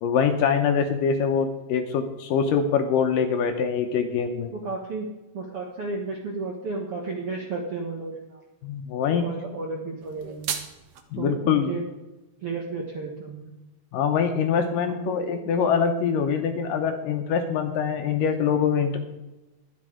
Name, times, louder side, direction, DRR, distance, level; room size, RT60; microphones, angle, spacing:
voice 1, 0.0-4.5 8.6-9.4 11.1-11.7 13.9-19.0, left 6 dB, 75° left, 6 dB, 2.3 m, -24 dB
voice 2, 4.5-5.1 5.3-8.4 9.1-10.5 11.1-11.9 12.4-13.5 14.8-15.3, right 3 dB, 65° right, 0 dB, 1.5 m, -33 dB
sound 1, 10.0-11.0, right 7 dB, 85° right, 1.4 m, -34 dB
12.0 x 10.0 x 4.9 m, 1.0 s
omnidirectional pair, 4.5 m